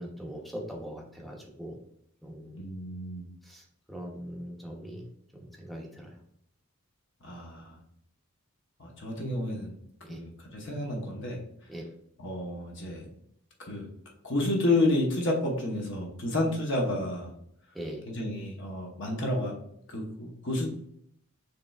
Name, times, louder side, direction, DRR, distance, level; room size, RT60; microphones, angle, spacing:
voice 1, 0.0-1.8 2.2-2.6 3.4-6.2 10.0-10.2 11.7-11.8 17.7-18.0, equal, ahead, 0 dB, 0.7 m, -41 dB
voice 2, 2.5-3.2 7.2-7.8 8.8-9.7 10.1-11.4 12.2-13.1 13.6-13.9 14.2-17.3 18.1-19.5 19.9-20.7, left 1 dB, 55° left, 0 dB, 0.9 m, -30 dB
6.7 x 3.2 x 2.3 m, 0.71 s
head